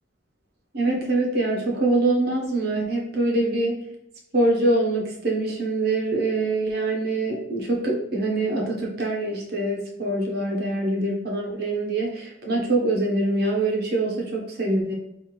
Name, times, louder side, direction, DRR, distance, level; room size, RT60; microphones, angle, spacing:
voice 1, 0.7-3.8 4.3-14.9, right 2 dB, 50° right, -1 dB, 0.9 m, -24 dB
5.5 x 2.5 x 3.0 m, 0.83 s
head